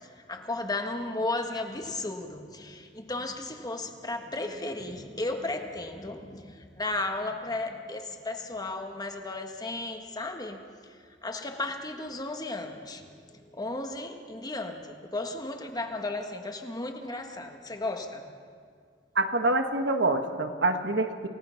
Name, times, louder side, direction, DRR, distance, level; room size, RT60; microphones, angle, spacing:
voice 1, 0.0-18.3, left 2 dB, 20° left, 5 dB, 1.5 m, -35 dB
voice 2, 19.1-21.3, right 2 dB, 75° right, 6 dB, 1.5 m, -26 dB
28.5 x 17.5 x 5.8 m, 2.1 s
head